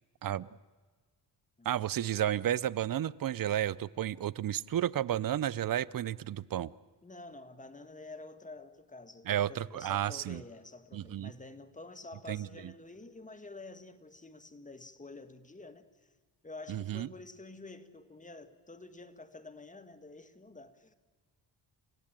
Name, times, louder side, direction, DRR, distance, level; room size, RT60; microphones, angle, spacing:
voice 1, 1.6-6.7 9.3-10.4 10.9-11.3 12.3-12.5 16.7-17.1, right 11 dB, 55° right, 20 dB, 0.7 m, -32 dB
voice 2, 7.0-16.1 16.4-20.9, left 2 dB, 20° left, 9 dB, 1.8 m, -49 dB
30.0 x 16.0 x 9.0 m, 1.4 s
cardioid pair, 90°, 41 cm